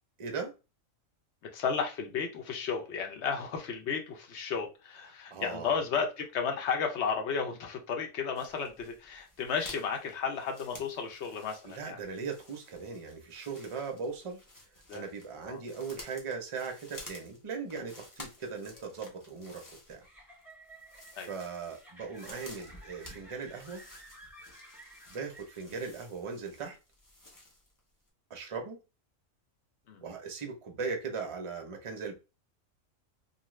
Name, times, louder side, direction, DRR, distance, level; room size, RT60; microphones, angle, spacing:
voice 1, 0.2-0.5 5.3-5.7 11.6-14.4 14.9-20.0 21.2-23.8 25.1-26.8 28.3-28.8 30.0-32.1, right 5 dB, 35° right, 0.5 m, -39 dB
voice 2, 1.5-12.0 14.9-15.1 15.4-15.6 21.2-21.3 29.9-30.0, left 6 dB, 60° left, 1.0 m, -33 dB
sound 1, 8.3-27.8 28.1-28.2, left 1 dB, 20° left, 0.5 m, -53 dB
sound 2, 18.4-26.0, right 1 dB, ahead, 0.9 m, -55 dB
2.6 x 2.3 x 3.1 m
omnidirectional pair, 1.4 m